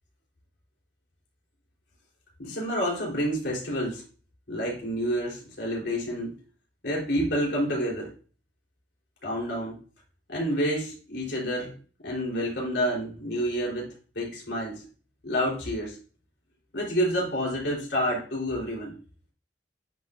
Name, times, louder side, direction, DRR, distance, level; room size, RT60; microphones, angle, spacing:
voice 1, 2.4-4.0 4.5-6.3 6.8-8.1 9.2-9.8 10.3-11.7 12.0-14.9 15.2-16.0 16.7-18.9, equal, 80° left, -3 dB, 3.4 m, -29 dB
9.4 x 5.7 x 2.5 m, 0.38 s
head